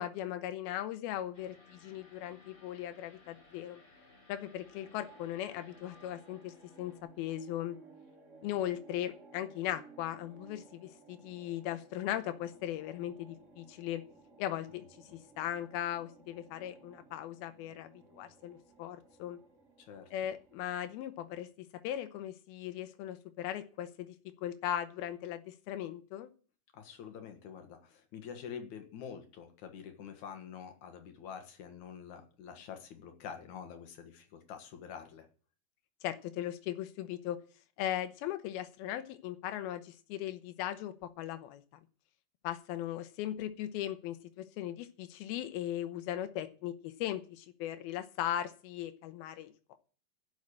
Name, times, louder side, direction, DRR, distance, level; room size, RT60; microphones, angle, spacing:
voice 1, 0.0-3.8 4.3-7.8 8.4-14.0 14.4-14.8 15.1-19.4 20.1-21.5 21.8-24.1 24.4-26.3 36.0-37.4 37.8-41.6 42.4-49.8, left 12 dB, 90° left, 9 dB, 2.7 m, -38 dB
sound 1, 1.3-7.0, left 3 dB, 35° left, 3.8 m, -60 dB
sound 2, 4.6-21.2, right 4 dB, 40° right, 1.0 m, -59 dB
voice 2, 19.8-20.1 26.7-35.3, left 7 dB, 60° left, 6 dB, 2.5 m, -47 dB
11.5 x 6.4 x 8.6 m, 0.40 s
omnidirectional pair, 4.3 m